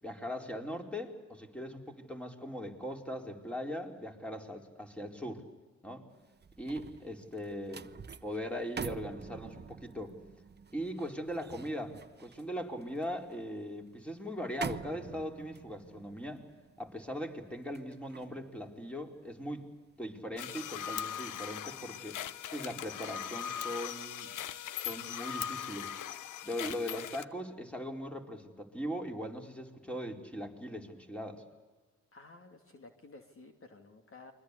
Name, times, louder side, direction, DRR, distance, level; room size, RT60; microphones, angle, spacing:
voice 1, 0.0-5.4 5.8-6.0 6.6-7.9 8.2-10.2 10.7-16.4 16.8-19.7 20.0-22.2 22.5-24.3 24.8-25.9 26.4-31.4, equal, 5° left, 3 dB, 4.4 m, -40 dB
sound 1, 6.2-19.5 19.9-20.2, right 6 dB, 30° right, 1.1 m, -47 dB
sound 2, 20.4-27.2, left 9 dB, 70° left, 1.1 m, -40 dB
voice 2, 32.1-34.3, left 3 dB, 40° left, 5 dB, 2.8 m, -53 dB
29.5 x 23.5 x 8.4 m, 1.3 s
supercardioid pair, 65°, 32 cm